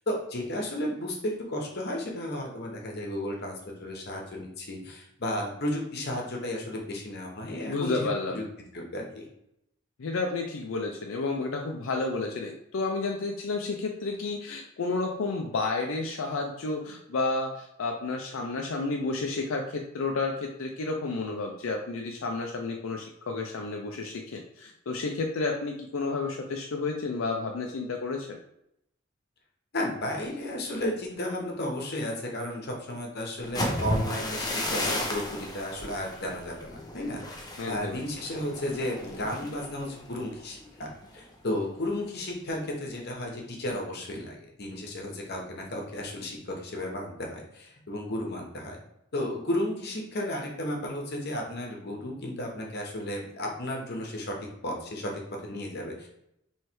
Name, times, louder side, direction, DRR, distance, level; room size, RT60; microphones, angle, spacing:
voice 1, 0.1-9.2 29.7-48.8 49.1-54.3 54.6-56.1, left 1 dB, 55° left, 0 dB, 1.0 m, -33 dB
voice 2, 7.7-8.4 10.0-28.4 37.6-38.0, left 3 dB, 85° left, 1 dB, 0.5 m, -31 dB
sound 1, 33.4-41.2 41.6-41.9 42.3-42.7, left 1 dB, 20° left, 0.6 m, -34 dB
3.2 x 3.2 x 4.5 m, 0.78 s
head